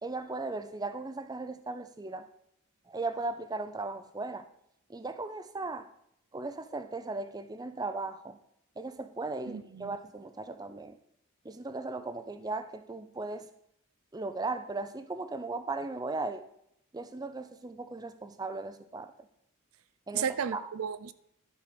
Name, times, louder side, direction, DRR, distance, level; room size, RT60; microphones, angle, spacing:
voice 1, 0.0-2.3 2.9-4.5 4.9-5.9 6.3-8.4 8.8-11.0 11.4-13.5 14.1-16.4 16.9-19.1 20.1-20.3 20.5-20.6, right 3 dB, 20° right, 11 dB, 0.5 m, -37 dB
voice 2, 9.5-9.9 20.1-21.1, right 7 dB, 85° right, 15 dB, 0.5 m, -34 dB
12.0 x 5.0 x 5.2 m, 0.75 s
head